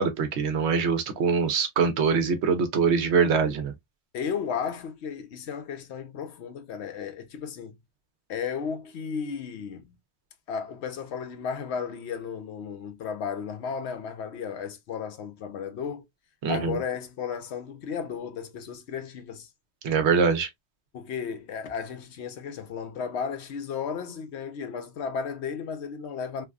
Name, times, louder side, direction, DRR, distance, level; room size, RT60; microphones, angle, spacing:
voice 1, 0.0-3.7 16.4-16.8 19.8-20.5, right 5 dB, 75° right, 1.0 m, -23 dB
voice 2, 4.1-7.8 8.3-9.9 10.5-16.1 16.5-19.5 20.9-26.5, left 6 dB, 75° left, 0.9 m, -34 dB
3.3 x 2.2 x 2.3 m
omnidirectional pair, 1.2 m